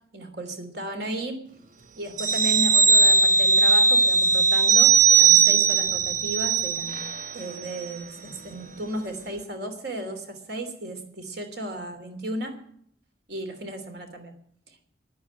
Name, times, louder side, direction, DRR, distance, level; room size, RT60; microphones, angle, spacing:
voice 1, 0.1-1.4 2.0-7.1 7.3-12.5 13.3-14.3, right 1 dB, 65° right, 5 dB, 3.0 m, -34 dB
sound 1, 2.2-7.3 7.6-7.8, right 5 dB, 45° right, 1.0 m, -19 dB
11.0 x 9.6 x 8.6 m, 0.64 s
head